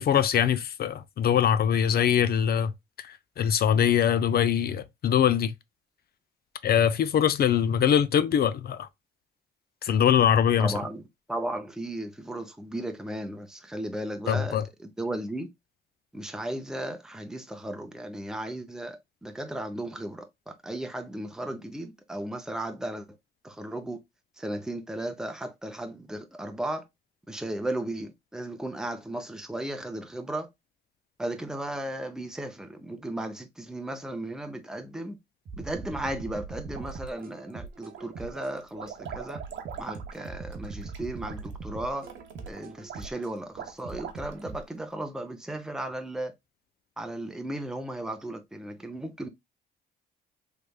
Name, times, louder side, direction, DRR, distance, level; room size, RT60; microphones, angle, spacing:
voice 1, 0.0-2.7 3.0-5.5 6.6-8.9 9.8-10.7 14.3-14.6, left 9 dB, 50° left, 0.4 m, -23 dB
voice 2, 10.6-11.0 11.3-15.5 16.1-23.1 23.4-24.0 24.4-26.9 27.3-30.5 31.2-35.2 35.6-39.4 39.8-42.1 42.4-46.3 47.0-49.3, right 1 dB, 5° right, 0.7 m, -35 dB
sound 1, 35.5-38.5 39.0-43.3 43.8-44.6, right 4 dB, 50° right, 0.8 m, -41 dB
sound 2, 36.7-37.5 37.9-44.6, right 8 dB, 70° right, 1.0 m, -43 dB
3.3 x 3.2 x 2.3 m
cardioid pair, 90°, 20 cm